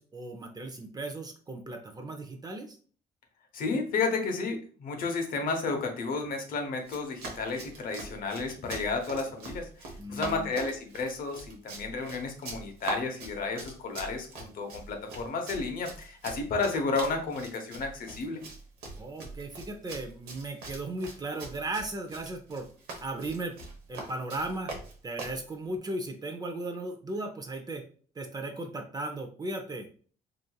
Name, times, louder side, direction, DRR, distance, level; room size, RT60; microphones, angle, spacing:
voice 1, 0.0-2.8 10.0-10.5 19.0-22.7 23.0-23.5 23.9-24.7 25.0-27.8 28.2-29.9, right 2 dB, 25° right, 5 dB, 0.5 m, -36 dB
voice 2, 3.5-9.7 10.1-18.4, left 4 dB, 60° left, 4 dB, 0.8 m, -32 dB
Run, 6.8-25.4, right 3 dB, 85° right, 0.9 m, -43 dB
3.0 x 2.5 x 2.2 m, 0.42 s
cardioid pair, 90°, 16 cm